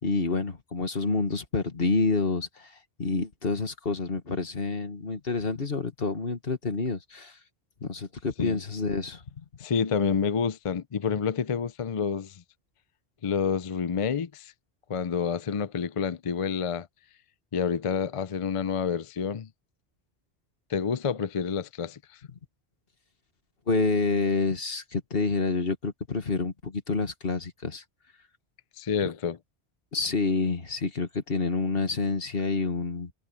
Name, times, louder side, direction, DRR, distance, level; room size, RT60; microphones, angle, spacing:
voice 1, 0.0-7.4 7.8-9.2 23.7-27.8 29.9-33.1, left 4 dB, 60° left, 1.9 m, -28 dB
voice 2, 9.6-12.4 13.2-14.5 14.9-16.9 17.5-19.5 20.7-22.2 28.8-29.4, left 6 dB, 40° left, 0.5 m, -28 dB
omnidirectional pair, 1.1 m